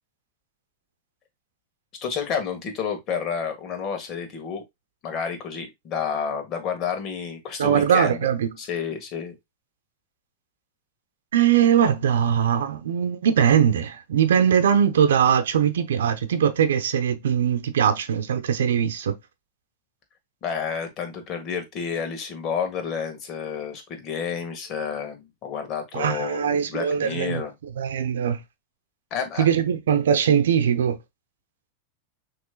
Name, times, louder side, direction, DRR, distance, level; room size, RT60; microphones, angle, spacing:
voice 1, 2.0-4.6 5.0-8.2 8.6-9.3 20.4-27.5 29.1-29.5, left 7 dB, 40° left, 1.6 m, -30 dB
voice 2, 7.6-8.5 11.3-19.2 25.9-27.4 27.8-28.4 29.4-31.0, right 8 dB, 80° right, 0.7 m, -21 dB
6.1 x 3.2 x 2.2 m
hypercardioid pair, 115°, 0 cm